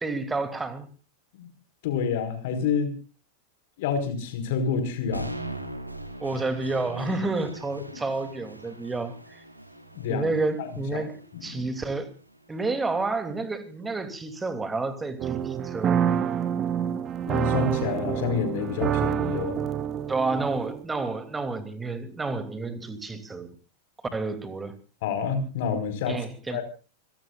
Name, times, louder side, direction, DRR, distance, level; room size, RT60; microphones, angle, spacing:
voice 1, 0.0-0.9 6.2-9.4 10.1-12.1 12.5-16.0 20.1-23.5 24.1-24.7 26.1-26.6, right 3 dB, 10° right, 2.9 m, -30 dB
voice 2, 1.8-2.9 3.8-5.3 9.9-10.3 10.6-11.7 17.3-19.6 25.0-26.2 26.5-26.6, left 6 dB, 50° left, 4.8 m, -28 dB
sound 1, 5.1-13.1, right 1 dB, 85° right, 2.5 m, -41 dB
sound 2, 15.2-20.8, right 9 dB, 30° right, 1.2 m, -27 dB
28.5 x 17.5 x 2.5 m
figure-of-eight pair, 90°, 0 cm